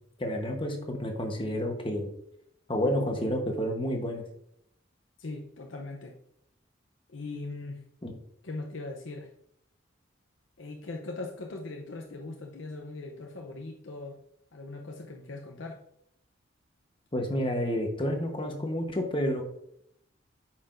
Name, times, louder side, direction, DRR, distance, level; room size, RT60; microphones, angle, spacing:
voice 1, 0.2-2.1 2.7-4.2 8.0-8.1 17.1-19.4, equal, 25° left, 3 dB, 1.0 m, -30 dB
voice 2, 5.2-6.2 7.1-7.8 8.4-9.3 10.6-14.2 14.5-15.8, left 2 dB, 75° left, 1 dB, 0.7 m, -40 dB
8.6 x 5.7 x 2.6 m, 0.76 s
head